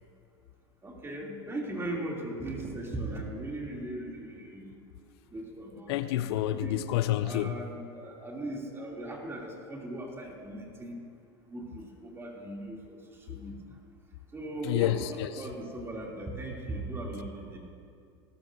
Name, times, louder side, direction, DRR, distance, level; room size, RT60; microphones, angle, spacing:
voice 1, 0.8-4.8 5.3-6.3 6.6-6.8 7.2-11.0 11.5-13.8 14.3-15.0 15.3-17.6, right 1 dB, 15° right, -2 dB, 2.8 m, -38 dB
voice 2, 5.9-7.6 14.6-15.4, left 13 dB, 65° left, 12 dB, 0.5 m, -29 dB
18.0 x 13.0 x 2.6 m, 2.4 s
hypercardioid pair, 100°, 14 cm